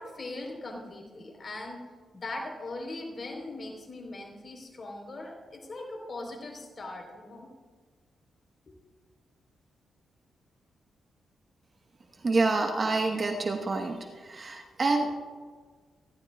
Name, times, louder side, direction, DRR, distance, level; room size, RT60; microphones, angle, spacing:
voice 1, 0.0-1.8 2.1-7.5 8.7-8.8, left 2 dB, 40° left, 1 dB, 3.8 m, -40 dB
voice 2, 12.2-15.1, right 3 dB, 40° right, 2 dB, 1.2 m, -27 dB
25.5 x 12.0 x 2.3 m, 1.5 s
cardioid pair, 85°, 0 cm